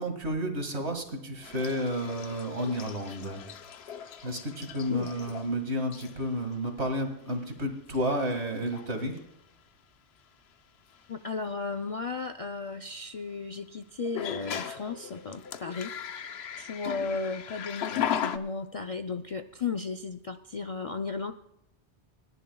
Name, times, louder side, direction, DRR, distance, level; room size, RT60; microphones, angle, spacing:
voice 1, 0.0-3.4 4.2-9.2, equal, 65° right, 5 dB, 2.2 m, -31 dB
sound 1, 1.4-5.5 5.9-6.3 7.3-7.4 7.9-8.3 8.6-8.9 10.9-11.0 14.0-18.4, left 9 dB, 65° left, 0.9 m, -37 dB
voice 2, 11.1-16.2 16.6-21.3, left 4 dB, 45° left, 8 dB, 0.4 m, -35 dB
28.0 x 11.0 x 2.3 m, 0.84 s
omnidirectional pair, 1.2 m